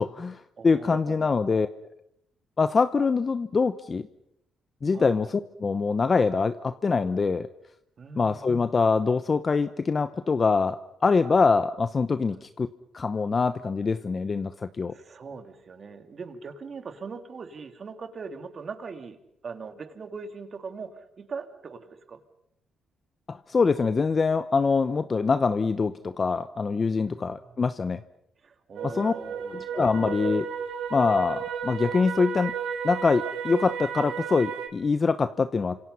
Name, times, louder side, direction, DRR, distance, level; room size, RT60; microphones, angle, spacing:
voice 1, 0.0-1.7 2.6-4.1 4.8-7.5 8.2-12.7 12.9-14.9 23.3-28.0 28.8-29.1 29.5-30.5 30.9-32.6 32.8-35.8, left 4 dB, 35° left, 12 dB, 0.9 m, -24 dB
voice 2, 0.6-1.4 4.9-5.1 8.0-8.5 12.2-12.4 14.9-19.2 19.4-22.2 27.1-27.5 28.4-29.8, right 5 dB, 45° right, 7 dB, 3.0 m, -41 dB
sound 1, 28.8-34.7, right 7 dB, 80° right, 3.0 m, -33 dB
29.0 x 26.5 x 5.7 m, 0.78 s
cardioid pair, 90°, 0 cm